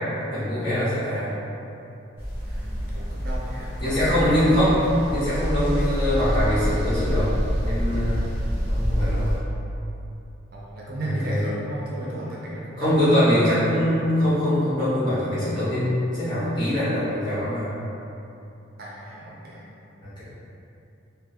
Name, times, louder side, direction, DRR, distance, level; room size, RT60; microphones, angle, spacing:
voice 1, 0.2-1.3 3.8-4.8 5.1-7.3 7.6-8.3 8.7-9.4 11.0-11.4 12.8-17.7 20.0-20.2, equal, 25° left, -13 dB, 1.1 m, -23 dB
voice 2, 1.0-1.3 2.4-4.9 8.4-8.9 10.5-12.9 18.8-19.7, right 1 dB, 50° right, -6 dB, 0.5 m, -35 dB
sound 1, 2.2-9.4, equal, 10° right, 0.8 m, -26 dB
3.5 x 2.3 x 2.8 m, 2.9 s
head